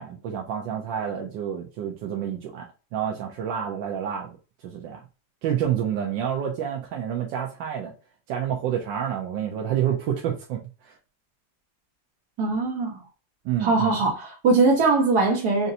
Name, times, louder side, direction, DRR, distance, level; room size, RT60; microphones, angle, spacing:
voice 1, 0.0-4.3 4.6-5.0 5.4-7.9 8.3-11.0 13.4-14.0, right 9 dB, 85° right, 1.4 m, -28 dB
voice 2, 12.4-13.0 13.6-15.7, right 3 dB, 60° right, 1.9 m, -21 dB
5.4 x 2.5 x 2.7 m
omnidirectional pair, 2.0 m